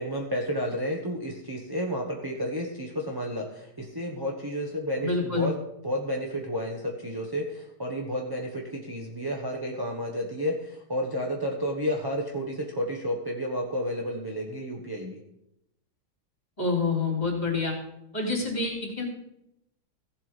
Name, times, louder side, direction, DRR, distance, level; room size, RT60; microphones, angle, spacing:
voice 1, 0.0-5.6 5.8-15.2, equal, 15° right, 0 dB, 0.8 m, -31 dB
voice 2, 5.0-5.5 16.6-17.7 18.1-19.0, left 3 dB, 20° left, 0 dB, 3.3 m, -27 dB
15.5 x 7.7 x 5.1 m, 0.83 s
omnidirectional pair, 2.3 m